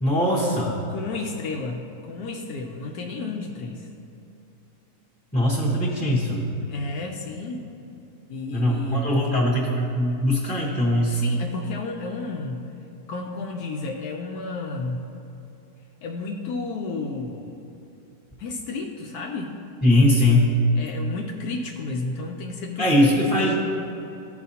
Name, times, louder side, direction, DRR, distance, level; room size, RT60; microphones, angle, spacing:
voice 1, 0.0-0.7 5.3-6.5 8.5-11.2 19.8-20.5 22.8-23.6, left 1 dB, 10° left, -9 dB, 0.8 m, -21 dB
voice 2, 0.9-3.9 6.5-7.6 8.3-9.4 11.1-12.6 13.1-15.1 16.0-17.7 18.4-19.6 20.8-23.1 23.4-23.6, left 3 dB, 70° left, 2 dB, 1.0 m, -32 dB
13.5 x 4.8 x 2.8 m, 2.9 s
omnidirectional pair, 1.8 m